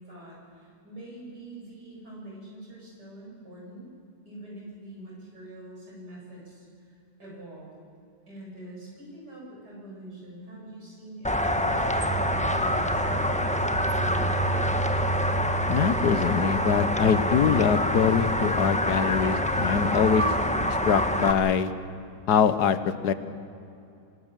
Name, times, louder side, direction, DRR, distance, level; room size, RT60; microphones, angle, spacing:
voice 1, 0.0-3.9 4.2-7.7 8.3-14.6, right 1 dB, 80° right, -4 dB, 8.5 m, -44 dB
sound 1, 11.2-21.3, equal, 5° left, 1.0 m, -25 dB
voice 2, 15.7-20.2 20.9-21.7 22.3-23.1, left 7 dB, 80° left, 12 dB, 1.6 m, -23 dB
26.0 x 19.0 x 7.5 m, 2.5 s
omnidirectional pair, 1.7 m